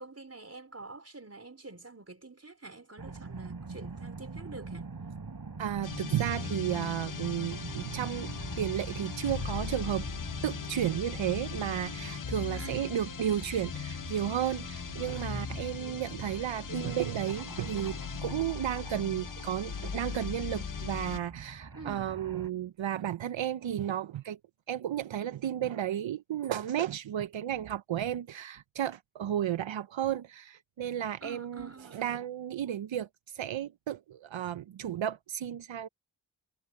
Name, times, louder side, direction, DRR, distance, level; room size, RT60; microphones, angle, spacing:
voice 1, 0.0-4.9 12.5-13.0 21.7-22.1 31.2-32.1, right 3 dB, 35° right, 4.4 m, -47 dB
sound 1, 3.0-22.5, right 4 dB, 55° right, 3.2 m, -45 dB
voice 2, 5.6-8.3 8.6-10.1 10.4-24.4 24.7-35.9, right 10 dB, 80° right, 0.7 m, -33 dB
sound 2, 5.8-21.3, left 6 dB, 45° left, 0.9 m, -39 dB
cardioid pair, 55°, 45 cm